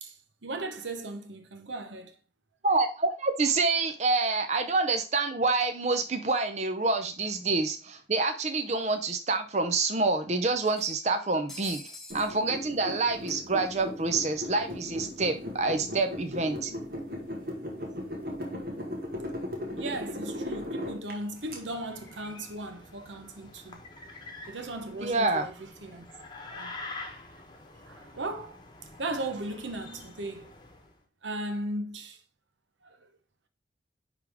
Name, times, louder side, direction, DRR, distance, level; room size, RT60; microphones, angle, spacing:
voice 1, 0.0-2.2 19.8-23.8 24.5-26.1 26.5-26.8 27.9-28.6 29.0-30.5 31.2-32.2 32.8-33.1, right 2 dB, 90° right, 1.0 m, -37 dB
voice 2, 2.6-11.8 12.1-16.7 25.0-25.5, right 3 dB, 35° right, 0.6 m, -27 dB
sound 1, 7.2-7.3 7.6-7.7 8.8-8.9 9.2-9.3 10.6-12.3, left 1 dB, 5° left, 0.8 m, -46 dB
sound 2, 12.1-21.6, left 1 dB, 55° right, 1.7 m, -37 dB
sound 3, 21.2-30.9, left 2 dB, 25° left, 1.1 m, -47 dB
9.9 x 3.5 x 3.5 m
head